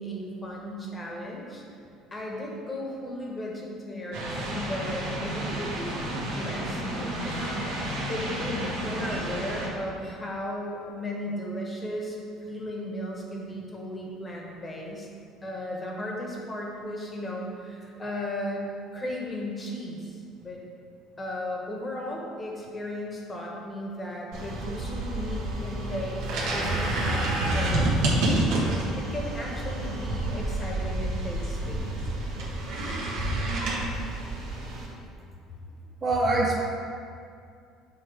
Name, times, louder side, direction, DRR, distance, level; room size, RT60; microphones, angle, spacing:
voice 1, 0.0-1.6 2.1-12.2 12.5-15.1 15.4-18.7 18.9-20.6 21.2-26.2 26.5-31.9, left 1 dB, 20° left, -2 dB, 1.2 m, -35 dB
sound 1, 4.1-9.7, right 1 dB, 90° right, 1.5 m, -32 dB
sound 2, 24.3-34.9, right 1 dB, 70° right, 1.5 m, -28 dB
voice 2, 36.0-36.6, right 2 dB, 25° right, -1 dB, 0.5 m, -25 dB
7.5 x 3.8 x 4.8 m, 2.4 s
cardioid pair, 140°, 0 cm